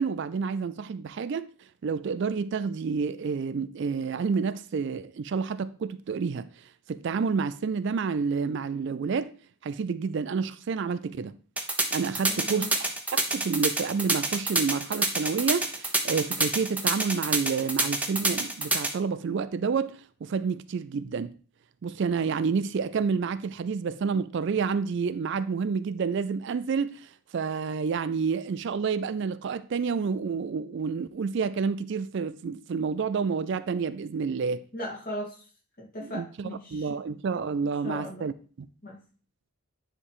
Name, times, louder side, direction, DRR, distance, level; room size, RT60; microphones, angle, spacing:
voice 1, 0.0-1.5 1.8-6.5 6.9-9.3 9.6-11.4 11.9-12.7 13.1-21.3 21.8-34.6 36.1-38.3 38.6-38.7, right 5 dB, 55° right, 0.3 m, -29 dB
sound 1, 11.6-18.9, right 2 dB, 5° right, 0.7 m, -26 dB
voice 2, 12.3-12.7 34.7-35.5 35.8-36.9 37.8-38.2 38.8-39.0, left 1 dB, 40° left, 2.5 m, -38 dB
9.9 x 3.3 x 4.7 m
head